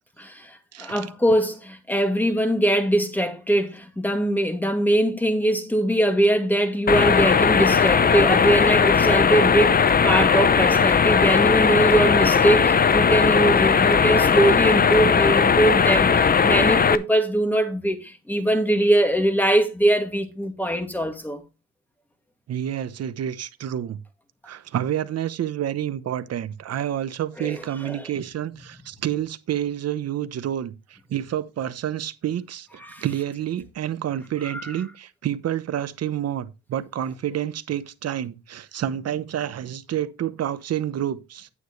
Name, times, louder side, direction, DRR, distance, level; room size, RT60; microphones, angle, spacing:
voice 1, 0.2-21.4 27.4-28.1 32.9-33.0 34.4-34.7, right 1 dB, 5° left, 2.3 m, -22 dB
sound 1, 6.9-17.0, left 6 dB, 30° left, 0.7 m, -18 dB
voice 2, 22.5-24.0 24.4-41.5, right 10 dB, 55° right, 0.9 m, -29 dB
9.4 x 8.1 x 3.2 m
cardioid pair, 90°, 30 cm